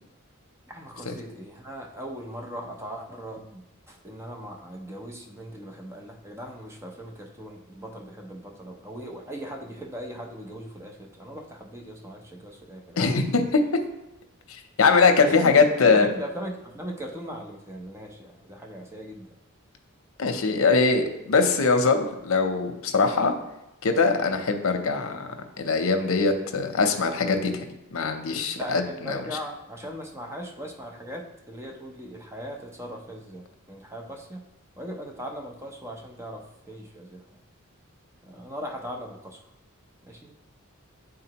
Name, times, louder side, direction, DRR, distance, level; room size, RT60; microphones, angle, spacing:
voice 1, 0.7-13.3 15.3-19.4 28.6-34.5 34.8-37.4 38.2-39.4 40.0-40.3, equal, 15° right, 2 dB, 0.7 m, -39 dB
voice 2, 13.0-13.6 14.8-16.1 20.2-23.3 23.8-29.2, left 4 dB, 75° left, 6 dB, 0.7 m, -22 dB
9.6 x 3.8 x 2.9 m, 0.91 s
head